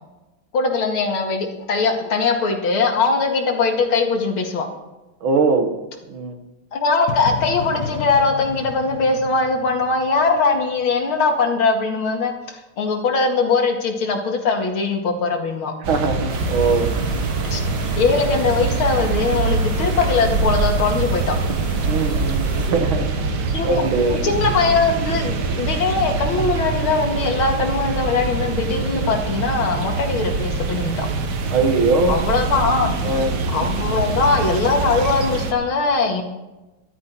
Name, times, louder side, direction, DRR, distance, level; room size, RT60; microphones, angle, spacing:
voice 1, 0.5-4.7 6.7-15.7 17.5-21.4 23.5-31.1 32.1-33.2 33.5-36.2, left 4 dB, 85° left, 3 dB, 2.7 m, -21 dB
voice 2, 5.2-5.7 6.1-6.4 15.9-16.9 21.9-23.1 23.6-24.2 31.5-32.2 33.0-33.3, right 3 dB, 80° right, 6 dB, 2.3 m, -20 dB
sound 1, 7.1-10.9, left 7 dB, 55° left, 1.1 m, -32 dB
sound 2, 15.8-35.5, right 3 dB, 55° right, 1.7 m, -24 dB
sound 3, 16.3-22.7, right 2 dB, 30° right, 2.0 m, -33 dB
14.0 x 12.5 x 4.5 m, 1.0 s
omnidirectional pair, 2.2 m